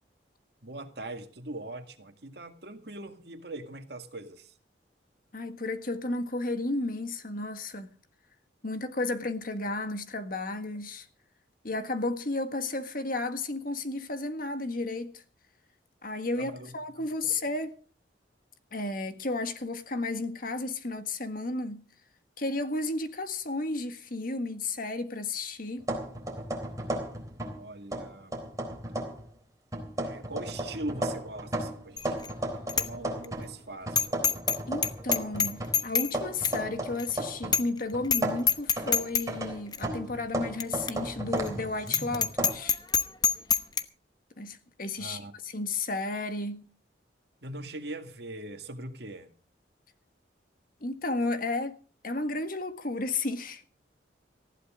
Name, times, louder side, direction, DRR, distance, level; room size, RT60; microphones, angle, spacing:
voice 1, 0.6-4.5 16.4-17.3 27.6-28.3 30.0-32.3 32.7-34.2 45.0-45.3 47.4-49.3, right 2 dB, 65° right, 2.1 m, -41 dB
voice 2, 5.3-7.9 8.6-11.1 11.6-15.2 16.0-17.7 18.7-21.8 22.4-25.9 34.7-42.8 44.4-45.2 45.4-46.7 50.8-51.8 52.0-53.6, left 2 dB, 50° left, 1.7 m, -33 dB
sound 1, 25.8-27.6 27.9-29.3 29.7-33.5 33.9-37.6 37.9-42.5, right 1 dB, 20° right, 3.8 m, -34 dB
Bicycle bell, 32.0-32.3 32.7-32.9 33.2-33.3 34.0-34.6 34.8-36.1 36.4-36.6 37.0-37.1 37.5-37.8 38.0-38.2 38.5-39.2 39.7-39.8 40.6-40.7 40.9-41.0 41.4-41.5 41.9-43.8, left 7 dB, 25° left, 0.9 m, -25 dB
19.5 x 15.0 x 3.7 m
head